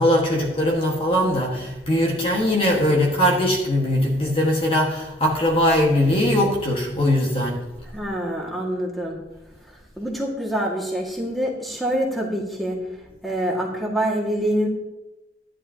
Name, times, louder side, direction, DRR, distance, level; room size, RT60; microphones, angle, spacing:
voice 1, 0.0-7.6, left 1 dB, 30° left, -1 dB, 1.6 m, -20 dB
voice 2, 7.9-9.2 10.0-12.8 13.2-14.7, right 1 dB, ahead, -3 dB, 2.0 m, -25 dB
13.0 x 11.0 x 2.9 m, 0.99 s
head